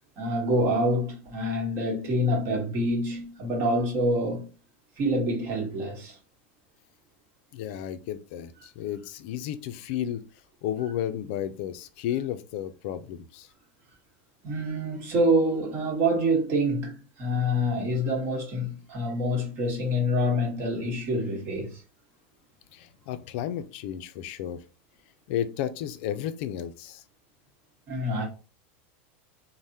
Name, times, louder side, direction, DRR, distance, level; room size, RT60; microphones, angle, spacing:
voice 1, 0.2-4.5 5.0-6.2 14.4-21.8 27.9-28.2, equal, 40° right, 1.2 m, -26 dB
voice 2, 7.5-10.2 10.6-13.5 22.7-24.6 25.3-27.0, left 10 dB, 60° left, 0.4 m, -33 dB
3.3 x 2.1 x 2.7 m
supercardioid pair, 140°, 7 cm